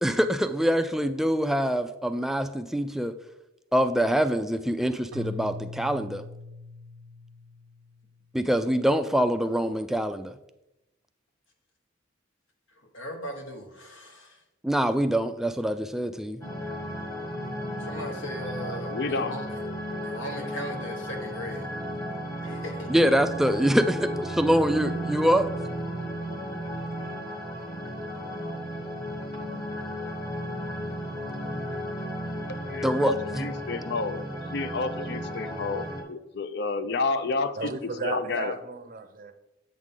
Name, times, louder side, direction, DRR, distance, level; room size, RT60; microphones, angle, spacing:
voice 1, 0.0-3.1 3.7-6.2 8.3-10.4 14.6-16.4 22.9-24.0 24.4-25.5 32.8-33.5, equal, ahead, 8 dB, 0.3 m, -24 dB
Keyboard (musical), 5.1-8.2, left 3 dB, 90° right, 0.5 m, -41 dB
voice 2, 12.7-14.4 17.8-19.6 20.0-21.7 22.4-22.9, equal, 75° left, 3 dB, 1.3 m, -38 dB
sound 1, 16.4-36.0, equal, 20° left, 1.2 m, -34 dB
voice 3, 18.9-19.3 32.7-34.2 34.5-38.6, left 3 dB, 55° left, 11 dB, 0.5 m, -30 dB
voice 4, 37.6-39.3, right 4 dB, 45° right, 6 dB, 0.6 m, -35 dB
8.2 x 6.4 x 3.7 m, 0.92 s
head